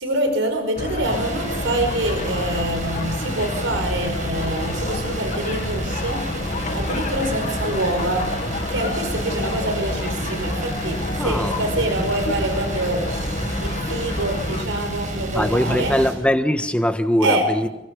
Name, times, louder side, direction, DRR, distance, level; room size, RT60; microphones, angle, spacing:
voice 1, 0.0-6.4 6.7-13.1 13.6-16.0 17.2-17.5, right 1 dB, 80° right, 4.9 m, -26 dB
sound 1, 0.8-14.6, left 2 dB, 40° left, 1.8 m, -29 dB
sound 2, 1.0-16.1, right 1 dB, 40° right, 6.0 m, -30 dB
Drip, 6.7-6.9 8.3-8.5 9.9-10.1 11.5-11.7 13.1-13.4, left 3 dB, 55° left, 2.5 m, -39 dB
voice 2, 11.2-12.0 15.3-17.7, equal, 5° left, 1.4 m, -22 dB
29.0 x 23.0 x 5.3 m
head